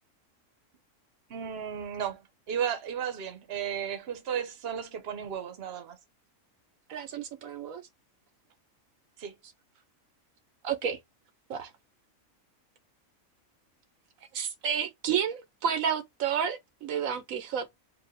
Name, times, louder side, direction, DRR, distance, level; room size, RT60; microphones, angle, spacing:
voice 1, 1.3-2.2 2.5-6.0 9.2-9.3, right 8 dB, 50° right, 1.1 m, -34 dB
voice 2, 6.9-7.8 10.6-11.0 11.5-11.7 14.3-17.7, right 8 dB, 75° right, 1.2 m, -31 dB
4.7 x 2.7 x 3.2 m
omnidirectional pair, 1.4 m